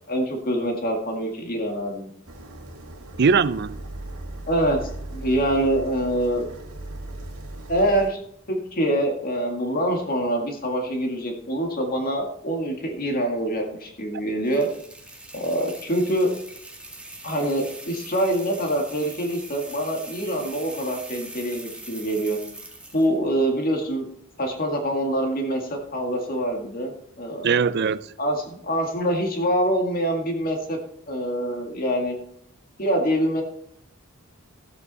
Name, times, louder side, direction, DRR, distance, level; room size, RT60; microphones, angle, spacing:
voice 1, 0.1-2.1 4.5-6.5 7.7-8.2 8.5-14.7 15.3-16.3 17.2-22.4 22.9-24.1 24.4-26.9 27.2-27.6 28.2-30.8 31.1-32.2 32.8-33.4, right 1 dB, 45° left, 2.0 m, -25 dB
sound 1, 2.2-8.1, right 1 dB, 80° right, 1.8 m, -38 dB
voice 2, 3.2-3.8 27.4-28.0, right 5 dB, 50° right, 0.5 m, -20 dB
sound 2, 14.4-23.2, right 2 dB, 5° right, 1.9 m, -42 dB
14.0 x 8.2 x 4.1 m
head